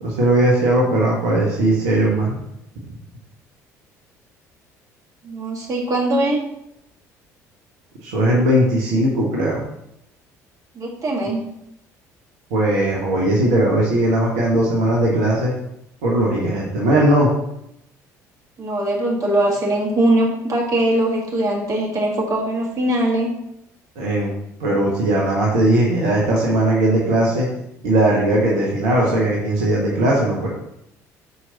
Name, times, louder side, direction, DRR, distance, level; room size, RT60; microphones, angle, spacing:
voice 1, 0.0-2.4 8.0-9.6 12.5-15.5 16.0-17.3 23.9-24.3 24.6-27.5 27.8-30.5, right 1 dB, 65° right, -4 dB, 1.1 m, -18 dB
voice 2, 5.2-6.4 10.8-11.4 18.6-23.3, right 1 dB, 40° right, -2 dB, 1.8 m, -21 dB
5.4 x 4.6 x 3.8 m, 0.80 s
figure-of-eight pair, 55°, 9 cm